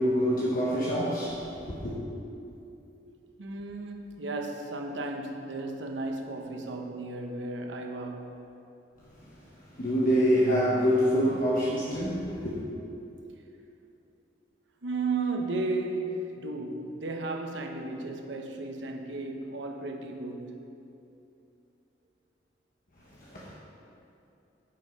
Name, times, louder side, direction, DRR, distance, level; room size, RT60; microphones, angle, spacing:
voice 1, 0.0-2.0 9.7-12.6 23.2-23.6, equal, 50° left, 1.1 m, -26 dB
voice 2, 3.4-8.4 14.8-20.7, right 3 dB, 90° right, 0.8 m, -34 dB
8.9 x 5.4 x 5.3 m
head